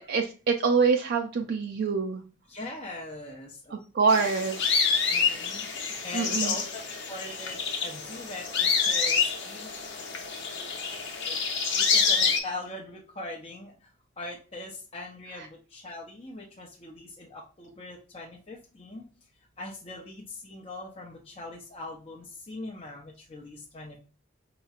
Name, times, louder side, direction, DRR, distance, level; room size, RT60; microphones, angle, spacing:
voice 1, 0.0-2.2 3.7-4.8 6.1-6.6 15.4-15.5, right 5 dB, 60° right, 2 dB, 0.4 m, -26 dB
voice 2, 2.5-3.8 4.9-9.8 10.1-11.4 11.7-13.9 14.2-19.0 19.6-24.0, left 2 dB, 30° left, -2 dB, 0.6 m, -41 dB
sound 1, 4.1-12.4, left 5 dB, 60° left, 0.9 m, -27 dB
5.3 x 3.0 x 2.4 m, 0.37 s
head